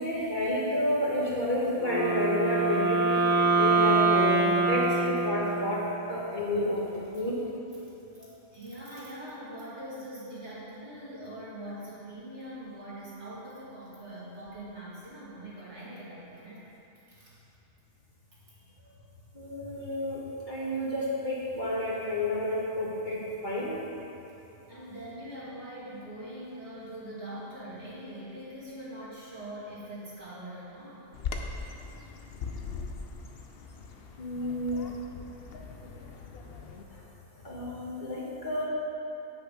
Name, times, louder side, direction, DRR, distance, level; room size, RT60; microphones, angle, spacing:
voice 1, 0.0-3.2 3.6-7.4 19.3-23.8 34.2-34.9 36.9-37.0 37.4-38.6, left 1 dB, 40° left, -6 dB, 1.4 m, -30 dB
Wind instrument woodwind instrument, 1.7-6.0, right 3 dB, 30° right, 1.4 m, -25 dB
voice 2, 8.5-16.6 17.1-17.3 24.7-31.1, right 1 dB, 65° right, -9 dB, 2.6 m, -42 dB
Bird vocalization bird call bird song, 31.1-36.8, left 5 dB, 60° left, 0.8 m, -40 dB
8.2 x 6.0 x 5.0 m, 3.0 s
omnidirectional pair, 1.3 m